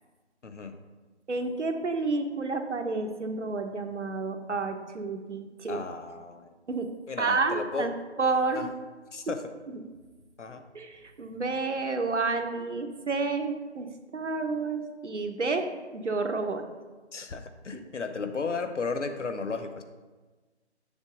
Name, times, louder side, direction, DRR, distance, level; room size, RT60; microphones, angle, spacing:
voice 1, 0.4-0.8 5.7-6.5 7.1-7.9 8.5-8.7 9.1-9.4 10.4-10.6 17.1-19.8, left 4 dB, 80° left, 8 dB, 0.9 m, -34 dB
voice 2, 1.3-5.8 6.7-6.9 7.2-8.9 9.7-9.8 10.7-13.9 14.1-15.7 15.9-16.7, right 3 dB, 80° right, 5 dB, 1.0 m, -30 dB
7.3 x 3.7 x 6.3 m, 1.3 s
figure-of-eight pair, 175°, 35 cm